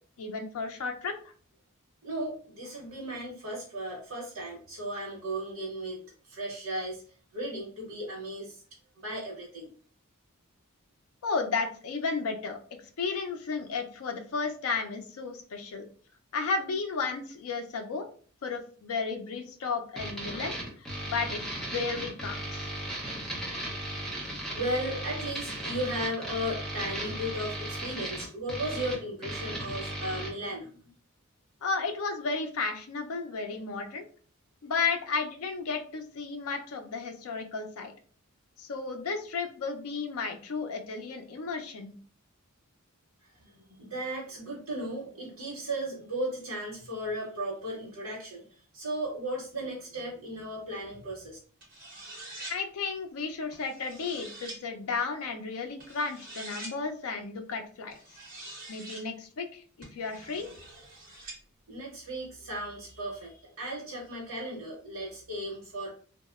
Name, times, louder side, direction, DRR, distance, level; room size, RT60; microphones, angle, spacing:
voice 1, 0.2-1.1 11.2-15.8 16.3-18.1 18.4-20.6 21.0-22.7 31.6-34.1 34.6-37.9 38.6-41.9 52.5-57.9 58.7-60.5, left 4 dB, 75° left, 5 dB, 0.4 m, -33 dB
voice 2, 2.0-7.0 7.3-8.6 9.0-9.7 23.6-23.8 24.5-30.8 43.4-48.4 48.7-51.4 61.7-65.9, right 1 dB, 75° right, -5 dB, 0.8 m, -36 dB
sound 1, 20.0-30.3, right 1 dB, ahead, 0.6 m, -36 dB
sound 2, 51.6-52.6 53.5-54.6 55.8-56.8 57.9-59.1 59.8-61.4, right 2 dB, 40° right, 0.9 m, -45 dB
2.8 x 2.0 x 2.3 m, 0.43 s
head